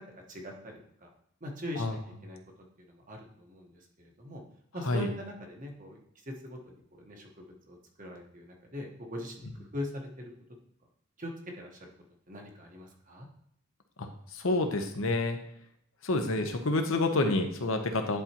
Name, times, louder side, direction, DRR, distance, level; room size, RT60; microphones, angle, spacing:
voice 1, 0.1-1.1 1.4-2.4 2.8-4.4 4.7-9.5 9.7-10.3 11.2-11.9 12.3-13.3, left 1 dB, 40° right, 1 dB, 1.2 m, -42 dB
voice 2, 14.0-15.4 16.0-18.2, left 2 dB, 70° left, 5 dB, 0.9 m, -28 dB
10.5 x 4.2 x 3.0 m, 0.69 s
head